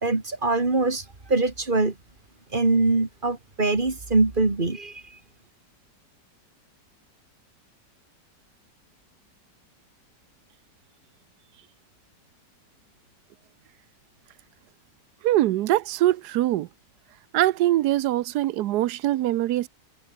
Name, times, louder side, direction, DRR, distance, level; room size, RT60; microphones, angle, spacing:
voice 1, 0.0-1.9 2.5-5.0, right 3 dB, 25° right, 2.6 m, -23 dB
voice 2, 15.2-16.7 17.3-19.7, right 14 dB, 70° right, 1.1 m, -23 dB
omnidirectional pair, 1.9 m